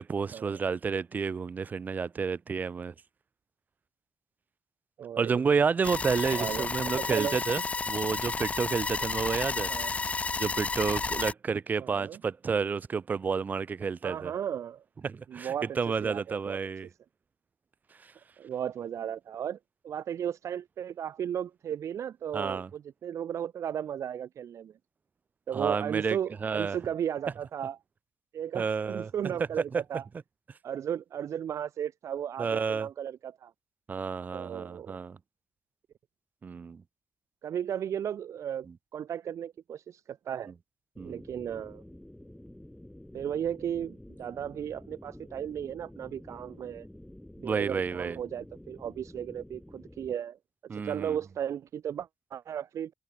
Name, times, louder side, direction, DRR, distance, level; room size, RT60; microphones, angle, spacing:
voice 1, 0.0-2.9 5.2-7.6 7.9-10.0 10.4-14.3 15.0-16.9 18.0-18.1 22.3-22.7 25.5-26.8 28.5-29.3 29.7-29.8 32.4-32.9 33.9-35.2 36.4-36.8 41.0-41.2 47.4-48.2 50.7-51.2, right 5 dB, 30° right, 0.5 m, -30 dB
voice 2, 5.0-5.4 6.2-7.3 9.7-9.9 11.8-12.2 14.0-14.8 15.3-16.6 18.4-19.6 19.8-24.7 25.5-27.8 28.3-30.0 30.6-33.5 34.3-35.0 37.4-40.5 41.0-41.8 43.1-46.9 47.4-50.4 50.7-52.9, right 9 dB, 65° right, 1.0 m, -35 dB
sound 1, 5.8-11.3, left 4 dB, 25° left, 0.6 m, -32 dB
sound 2, 41.0-50.1, left 1 dB, 5° left, 2.2 m, -49 dB
wide cardioid pair, 160°, 6 cm